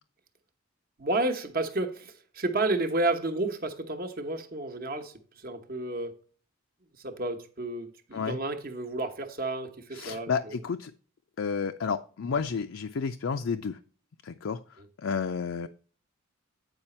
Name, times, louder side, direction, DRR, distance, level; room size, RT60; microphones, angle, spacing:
voice 1, 1.0-6.1 7.0-10.6, right 2 dB, 45° right, 1.1 m, -31 dB
voice 2, 9.9-10.9 11.4-13.8 14.2-14.6 15.0-15.7, left 5 dB, 65° left, 0.4 m, -31 dB
8.9 x 4.9 x 4.4 m
head